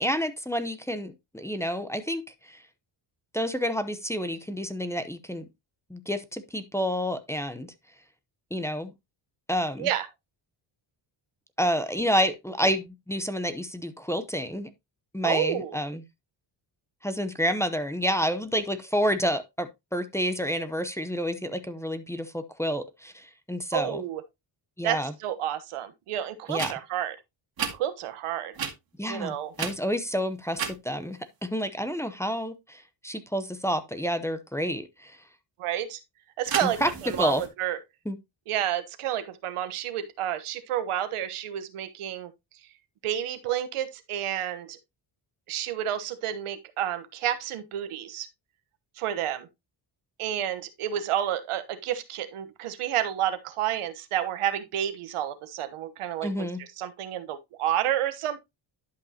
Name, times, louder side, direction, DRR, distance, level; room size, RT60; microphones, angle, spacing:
voice 1, 0.0-2.6 3.3-5.5 5.9-7.7 8.5-8.9 9.5-9.9 11.6-14.7 15.1-16.0 17.0-24.0 24.8-25.1 26.5-26.7 29.0-35.2 36.6-36.9 37.2-37.4 38.1-38.2 56.2-56.6, equal, 5° left, 0.8 m, -29 dB
voice 2, 15.2-15.8 23.7-24.2 24.8-27.1 27.7-28.5 29.1-29.5 35.6-36.0 36.4-37.8 38.5-42.3 43.0-44.8 45.5-48.3 49.0-49.5 50.2-58.4, right 11 dB, 85° right, 1.2 m, -30 dB
sound 1, 26.5-26.7 27.6-27.7 28.5-28.7 29.5-30.1 30.5-30.8 36.5-37.5, right 7 dB, 45° right, 2.1 m, -32 dB
11.5 x 5.4 x 2.9 m
cardioid pair, 100°, 49 cm